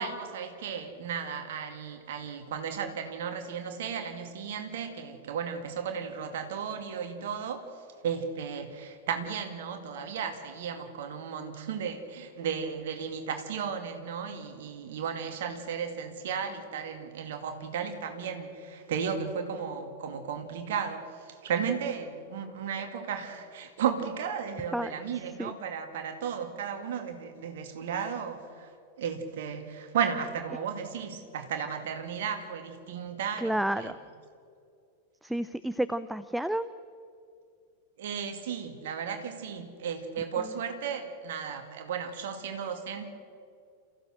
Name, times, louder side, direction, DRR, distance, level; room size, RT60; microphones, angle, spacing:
voice 1, 0.0-7.7 8.0-28.7 29.0-33.9 38.0-43.1, right 7 dB, 55° right, 6 dB, 2.3 m, -34 dB
voice 2, 33.4-33.9 35.2-36.7 40.4-40.5, right 1 dB, 5° right, 15 dB, 0.5 m, -30 dB
29.5 x 15.5 x 6.3 m, 2.4 s
figure-of-eight pair, 90°, 0 cm